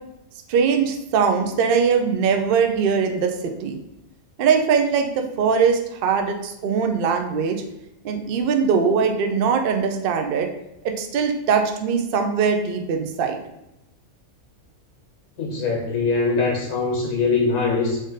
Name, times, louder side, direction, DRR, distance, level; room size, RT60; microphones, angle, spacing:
voice 1, 0.5-3.8 4.4-7.6 8.0-10.5 10.8-13.4, right 6 dB, 75° right, 4 dB, 0.5 m, -21 dB
voice 2, 15.4-18.0, left 4 dB, 90° left, -1 dB, 1.4 m, -22 dB
3.6 x 2.5 x 3.9 m, 0.87 s
omnidirectional pair, 1.5 m